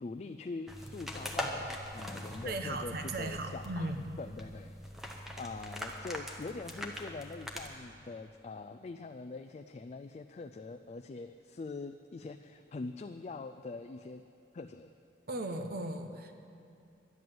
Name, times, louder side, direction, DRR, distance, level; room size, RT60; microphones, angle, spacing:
voice 1, 0.0-4.8 5.4-14.2 14.5-14.9, left 3 dB, 40° left, 8 dB, 0.3 m, -43 dB
sound 1, 0.7-7.7, equal, ahead, 0.9 m, -42 dB
voice 2, 2.4-4.2 15.3-16.3, right 2 dB, 55° right, 6 dB, 0.7 m, -37 dB
11.0 x 11.0 x 7.7 m, 2.6 s
head